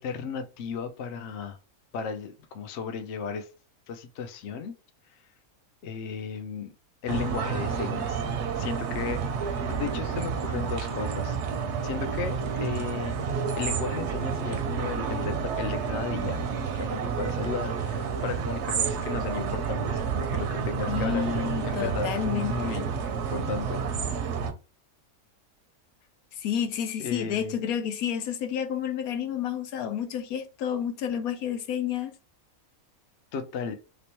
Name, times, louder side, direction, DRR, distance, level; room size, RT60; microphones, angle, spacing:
voice 1, 0.0-1.6 1.9-3.5 3.9-4.7 5.8-6.7 7.0-8.2 8.6-11.4 11.8-22.9 23.3-23.8 27.0-27.6 33.3-33.8, left 6 dB, 60° left, 0.8 m, -35 dB
sound 1, 7.1-24.5, right 6 dB, 60° right, 0.8 m, -30 dB
voice 2, 20.9-22.7 26.3-32.1, left 9 dB, 80° left, 1.1 m, -30 dB
3.2 x 3.0 x 3.0 m
omnidirectional pair, 1.5 m